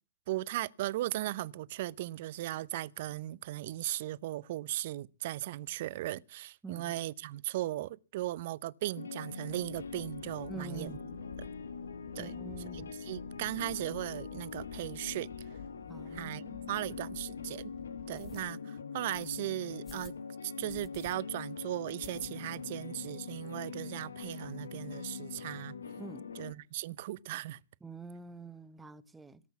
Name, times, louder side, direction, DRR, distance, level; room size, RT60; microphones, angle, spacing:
voice 1, 0.3-11.0 11.4-11.5 12.2-12.4 12.7-15.3 16.1-17.7 18.1-20.2 20.4-25.7 26.4-27.6, right 15 dB, 55° right, 0.7 m, -37 dB
voice 2, 6.6-7.0 10.5-11.2 12.2-13.0 15.9-16.7 26.0-26.3 27.8-29.4, right 3 dB, 10° right, 1.3 m, -47 dB
sound 1, 9.0-26.5, left 5 dB, 80° left, 1.6 m, -43 dB
sound 2, 9.5-18.5, left 7 dB, 55° left, 1.6 m, -51 dB
sound 3, 18.1-18.4 19.1-19.4 19.8-20.2 20.7-21.1 21.5-21.6 22.0-22.7 23.0-23.1 23.4-23.5 23.7-24.3, left 6 dB, 15° left, 1.4 m, -55 dB
17.5 x 8.1 x 7.1 m
figure-of-eight pair, 105°, 0 cm